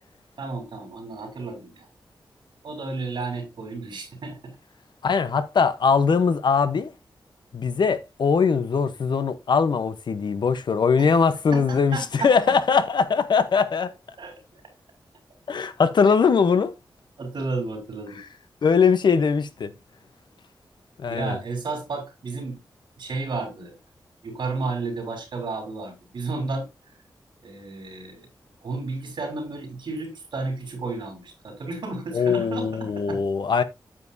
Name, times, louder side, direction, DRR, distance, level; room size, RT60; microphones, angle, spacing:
voice 1, 0.4-1.9 2.6-4.5 11.0-12.3 14.2-14.4 17.2-18.2 21.1-22.6 23.0-23.8 24.2-26.7 27.4-28.3 28.6-33.2, right 3 dB, 75° right, 3.7 m, -32 dB
voice 2, 5.0-6.9 7.5-13.9 15.5-16.7 18.6-19.7 21.0-21.4 32.1-33.6, left 5 dB, 70° left, 0.9 m, -21 dB
9.6 x 7.7 x 2.7 m
wide cardioid pair, 160°, 8 cm